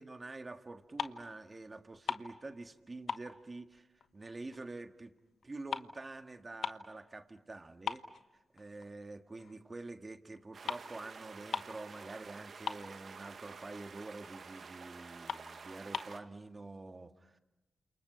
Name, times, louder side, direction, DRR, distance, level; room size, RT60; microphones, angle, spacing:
voice 1, 0.0-3.9 4.1-5.1 5.4-8.0 8.5-17.4, right 2 dB, 35° right, 7 dB, 1.8 m, -47 dB
sound 1, 0.7-1.4 1.7-2.8 3.1-4.6 4.9-7.0 7.4-7.5 7.9-8.9 9.4-9.6 10.4-10.5 10.7-10.9 11.2-11.3 11.5-11.9 12.2-12.3 12.5-13.3 13.7-13.8 14.3-14.4 14.8-14.9 15.2-16.2, left 6 dB, 75° left, 1.1 m, -40 dB
sound 2, 10.5-16.2, right 5 dB, 65° right, 1.4 m, -50 dB
29.5 x 28.0 x 5.8 m, 1.1 s
cardioid pair, 55°, 0 cm